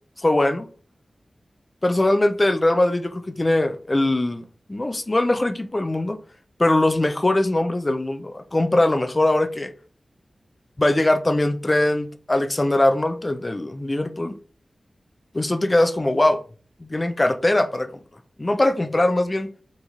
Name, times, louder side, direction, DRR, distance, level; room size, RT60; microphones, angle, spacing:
voice 1, 0.2-0.7 1.8-6.2 6.6-9.7 10.8-14.4 15.3-16.4 16.8-17.9 18.4-19.5, left 1 dB, 35° left, 0.4 m, -21 dB
4.0 x 2.5 x 2.9 m
cardioid pair, 50°, 0 cm